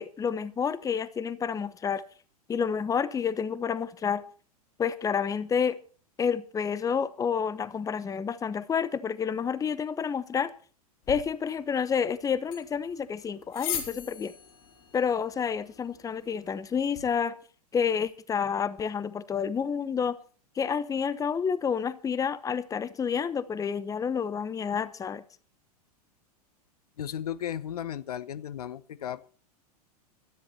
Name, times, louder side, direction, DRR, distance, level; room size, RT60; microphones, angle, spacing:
voice 1, 0.0-2.0 2.5-4.2 4.8-5.8 6.2-10.5 11.1-14.3 14.9-17.4 17.7-20.2 20.6-25.2, left 7 dB, 15° left, 0.9 m, -29 dB
sound 1, 11.0-17.0, left 9 dB, 45° left, 4.3 m, -41 dB
voice 2, 27.0-29.2, left 10 dB, 70° left, 0.9 m, -35 dB
17.5 x 13.5 x 4.2 m
figure-of-eight pair, 95°, 20 cm